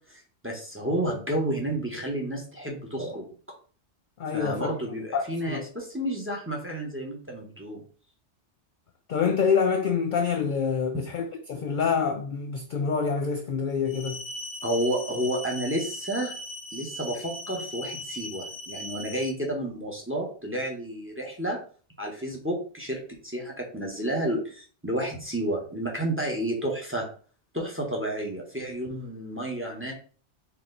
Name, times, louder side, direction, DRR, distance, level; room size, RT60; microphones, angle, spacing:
voice 1, 0.1-3.3 4.3-7.8 10.9-11.0 14.6-16.3 16.7-21.6 22.0-23.0 23.2-27.1 27.5-29.9, right 1 dB, 10° right, 1.0 m, -31 dB
voice 2, 4.2-4.7 5.1-5.7 9.1-14.2, left 6 dB, 55° left, 0.5 m, -26 dB
sound 1, 13.9-19.3, left 1 dB, 75° left, 1.5 m, -38 dB
4.6 x 2.9 x 3.8 m
omnidirectional pair, 1.2 m